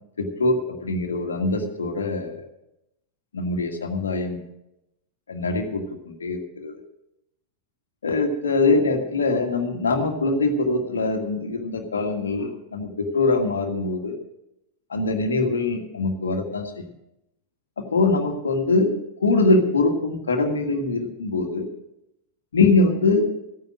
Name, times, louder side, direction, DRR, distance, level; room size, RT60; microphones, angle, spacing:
voice 1, 0.2-2.4 3.3-4.4 5.3-6.7 8.0-14.2 14.9-16.7 17.8-18.9 19.2-21.7 22.5-23.3, left 3 dB, 70° left, 4 dB, 1.8 m, -23 dB
15.0 x 9.4 x 6.2 m, 0.85 s
figure-of-eight pair, 90°, 0 cm